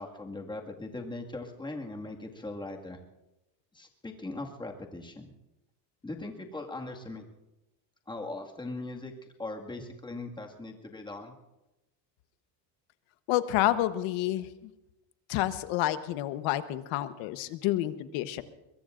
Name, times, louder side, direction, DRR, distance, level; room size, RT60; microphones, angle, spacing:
voice 1, 0.0-3.0 3.7-5.3 6.0-7.2 8.1-9.1 9.4-11.3, left 2 dB, 10° left, 1 dB, 2.0 m, -40 dB
voice 2, 13.3-14.7 15.3-18.4, left 14 dB, 70° left, 11 dB, 1.2 m, -29 dB
24.0 x 22.5 x 2.6 m, 0.96 s
cardioid pair, 125°, 48 cm